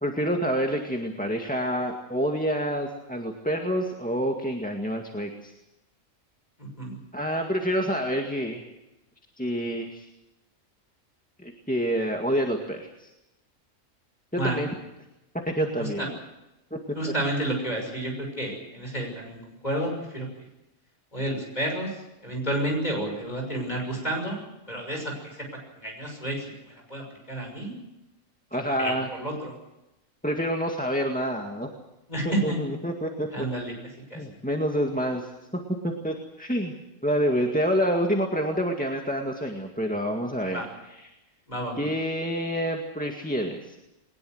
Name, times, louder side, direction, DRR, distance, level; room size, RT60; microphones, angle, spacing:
voice 1, 0.0-5.5 7.1-8.6 9.4-10.1 11.4-13.1 14.3-14.7 15.4-16.2 16.7-16.8 17.0-17.1 28.5-29.1 30.2-31.7 32.4-33.5 34.1-36.7 37.0-41.1 41.8-43.8, equal, 5° left, 2 dB, 1.9 m, -28 dB
voice 2, 6.6-7.0 14.4-14.6 16.0-16.1 17.0-20.3 21.1-21.9 22.2-24.4 24.7-25.1 25.8-26.4 26.9-27.7 28.8-28.9 29.2-29.5 32.1-32.6 33.3-33.7 34.1-34.2 40.5-40.6 41.5-41.8, right 1 dB, 30° left, 2 dB, 6.4 m, -30 dB
21.5 x 20.0 x 7.9 m, 0.93 s
omnidirectional pair, 1.4 m